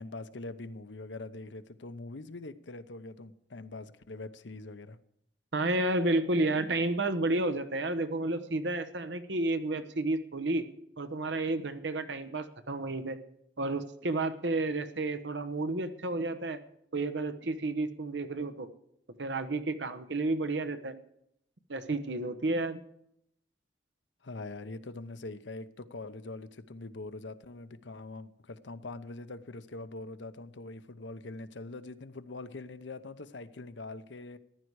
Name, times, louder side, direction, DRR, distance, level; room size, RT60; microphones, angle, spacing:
voice 1, 0.0-5.0 24.2-34.4, left 2 dB, 90° left, 12 dB, 0.9 m, -43 dB
voice 2, 5.5-10.7 11.0-13.2 13.6-16.6 16.9-18.7 19.2-21.0 21.7-22.8, right 2 dB, 75° right, 11 dB, 1.0 m, -31 dB
15.0 x 11.0 x 4.8 m, 0.75 s
head